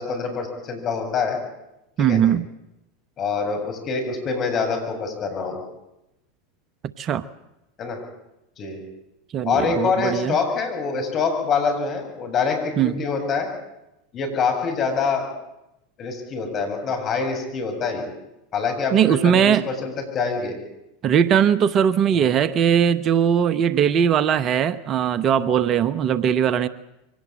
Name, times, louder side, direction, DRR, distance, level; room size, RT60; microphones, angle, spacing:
voice 1, 0.0-1.4 2.0-2.2 3.2-5.6 7.8-8.0 8.6-8.8 9.4-13.5 14.1-15.3 16.0-18.1 18.5-20.6 22.1-22.3, left 5 dB, 40° left, 4 dB, 7.3 m, -25 dB
voice 2, 2.0-2.5 7.0-7.2 9.3-10.4 12.8-13.0 18.9-19.6 21.0-26.7, right 8 dB, 40° right, 15 dB, 1.0 m, -19 dB
24.0 x 18.0 x 8.8 m, 0.89 s
hypercardioid pair, 90°, 0 cm